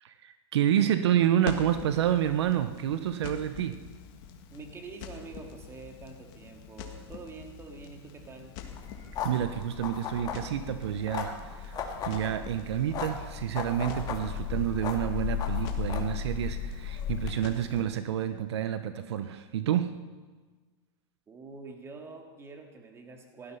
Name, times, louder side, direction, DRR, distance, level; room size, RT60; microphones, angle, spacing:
voice 1, 0.0-3.8 9.2-19.9, right 10 dB, 75° right, 10 dB, 0.9 m, -29 dB
Crackle, 1.4-17.8, left 7 dB, 50° left, 2.2 m, -45 dB
voice 2, 4.5-8.6 21.3-23.6, right 4 dB, 20° right, 3 dB, 2.2 m, -46 dB
sound 1, 8.6-17.3, left 7 dB, 30° left, 2.1 m, -35 dB
17.0 x 13.5 x 5.5 m, 1.3 s
hypercardioid pair, 135°, 14 cm